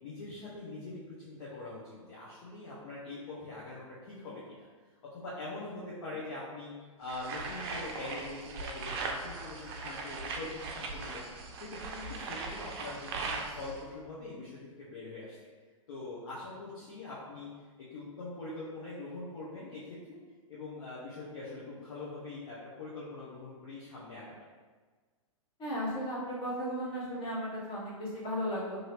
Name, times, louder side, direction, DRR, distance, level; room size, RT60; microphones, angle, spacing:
voice 1, 0.0-4.7 5.0-6.7 7.0-11.3 11.7-15.4 15.9-17.5 17.8-19.8 20.1-20.2 20.5-24.4, left 2 dB, 55° left, -7 dB, 0.8 m, -43 dB
sound 1, 7.1-13.8, right 3 dB, 45° right, 0.5 m, -39 dB
voice 2, 25.6-28.8, equal, 30° left, -6 dB, 1.2 m, -35 dB
2.7 x 2.7 x 3.0 m, 1.4 s
hypercardioid pair, 115°, 18 cm